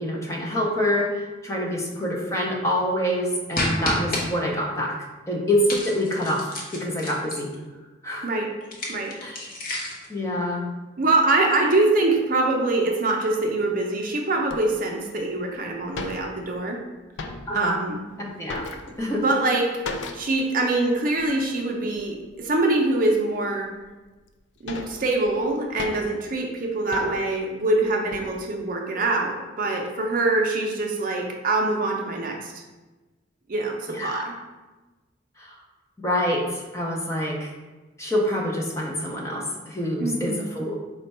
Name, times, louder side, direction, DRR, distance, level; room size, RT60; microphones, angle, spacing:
voice 1, 0.0-5.0 5.3-6.5 6.7-7.5 8.0-8.3 9.2-9.4 10.1-10.7 17.5-17.8 18.2-18.6 19.0-19.2 33.9-34.3 35.4-35.6 36.0-37.5 38.0-40.8, equal, 15° left, -2 dB, 0.5 m, -26 dB
sound 1, 3.5-4.2 5.7-7.5 8.6-10.1, left 1 dB, 45° left, 0.7 m, -30 dB
voice 2, 11.0-16.8 17.5-18.0 19.1-19.8 20.1-23.7 24.6-32.5 33.5-34.3 40.0-40.5, right 2 dB, 45° right, 1 dB, 0.5 m, -24 dB
sound 2, 14.5-14.6 15.3-15.4 15.6-15.7 15.9-16.7 17.0-17.7 18.1-19.2 19.9-20.4 20.7-20.8 21.2-21.4 22.0-22.5 23.0-23.1 23.8-23.9 24.3-26.3 26.9-27.4 27.9-28.3, left 3 dB, 70° left, 0.4 m, -36 dB
4.3 x 2.2 x 4.1 m, 1.2 s
head